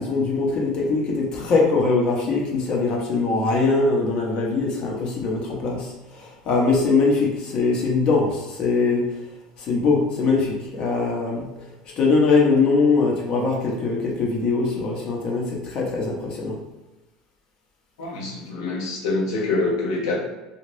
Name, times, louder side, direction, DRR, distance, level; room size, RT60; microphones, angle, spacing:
voice 1, 0.0-9.1 9.6-11.6 12.0-16.6, left 4 dB, 50° left, -2 dB, 0.9 m, -22 dB
voice 2, 18.0-20.2, left 3 dB, 90° left, -3 dB, 0.9 m, -25 dB
2.7 x 2.4 x 3.2 m, 1.1 s
supercardioid pair, 100°, 2 cm